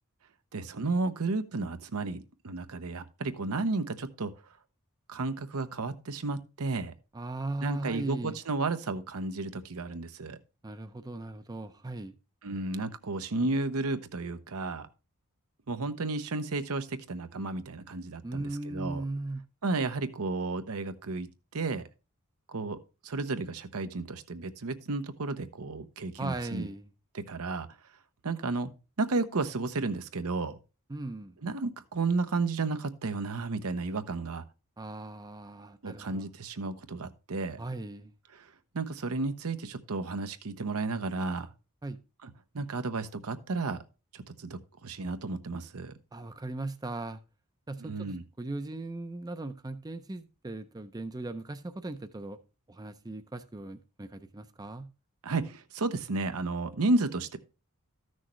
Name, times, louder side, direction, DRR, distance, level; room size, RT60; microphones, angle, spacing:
voice 1, 0.5-2.2 2.4-4.3 5.1-6.9 7.6-10.4 12.4-14.9 15.7-19.0 19.6-21.8 22.5-26.7 27.1-27.7 28.2-28.7 29.0-30.6 31.4-34.4 35.8-37.6 38.3-38.4 38.7-41.5 42.2-42.3 42.5-43.8 44.1-45.9 47.8-48.2 55.2-57.4, right 3 dB, 75° right, 0.8 m, -32 dB
voice 2, 7.1-8.4 10.6-12.1 18.2-19.4 26.2-26.9 30.9-31.4 34.8-36.2 37.6-38.1 41.8-42.0 46.1-47.2 47.7-52.4 52.7-54.9, right 2 dB, 15° right, 0.5 m, -38 dB
13.5 x 6.3 x 3.1 m
head